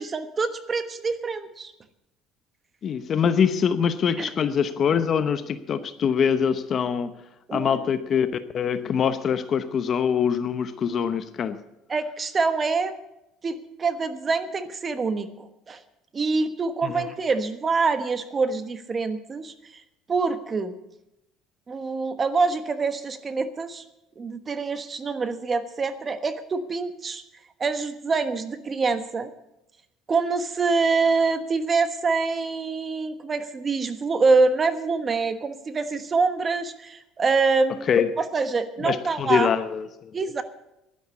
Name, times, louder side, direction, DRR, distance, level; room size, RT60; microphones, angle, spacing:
voice 1, 0.0-1.7 4.2-4.3 7.5-7.8 11.9-12.9 13.4-15.8 16.1-19.8 20.1-20.8 21.7-23.8 24.2-27.2 27.6-29.3 30.1-37.9 38.2-39.5 40.1-40.4, right 4 dB, 30° right, 10 dB, 1.2 m, -25 dB
voice 2, 2.8-7.1 7.5-8.3 8.5-11.6 16.8-17.1 37.9-38.1 38.8-40.1, left 7 dB, 45° left, 11 dB, 0.8 m, -24 dB
11.0 x 11.0 x 8.3 m, 0.90 s
cardioid pair, 110°, 0 cm